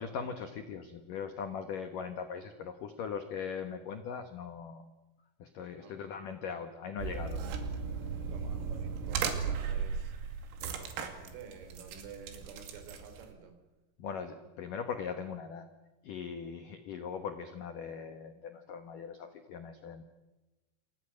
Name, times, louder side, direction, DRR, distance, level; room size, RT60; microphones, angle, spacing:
voice 1, 0.0-4.9 5.4-7.4 14.0-15.7 16.0-20.0, left 6 dB, 75° left, 8 dB, 1.9 m, -40 dB
sound 1, 7.0-13.3, right 6 dB, 90° right, 5.1 m, -36 dB
voice 2, 8.2-10.1 10.6-13.6, right 6 dB, 75° right, 8 dB, 5.8 m, -51 dB
28.5 x 27.5 x 6.4 m, 1.1 s
omnidirectional pair, 6.0 m